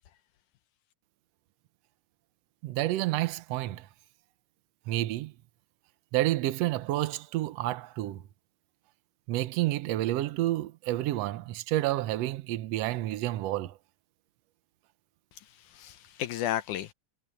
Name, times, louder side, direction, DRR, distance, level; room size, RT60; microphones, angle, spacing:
voice 1, 2.6-3.9 4.9-5.3 6.1-8.2 9.3-13.8, right 15 dB, 70° right, 1.7 m, -29 dB
voice 2, 15.3-16.9, left 12 dB, 75° left, 2.2 m, -34 dB
omnidirectional pair, 3.6 m